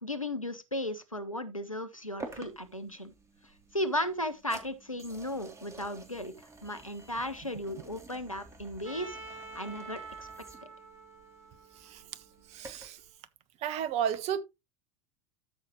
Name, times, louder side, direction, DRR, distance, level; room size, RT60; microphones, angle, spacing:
voice 1, 0.0-3.1 3.7-10.3, left 1 dB, 90° left, 1.2 m, -36 dB
sound 1, 2.2-13.1, right 3 dB, 15° right, 3.1 m, -50 dB
Trumpet, 8.8-12.9, right 3 dB, 65° right, 2.9 m, -47 dB
voice 2, 12.5-13.0 13.6-14.4, right 9 dB, 40° right, 1.3 m, -32 dB
13.0 x 6.5 x 3.1 m
figure-of-eight pair, 80°, 17 cm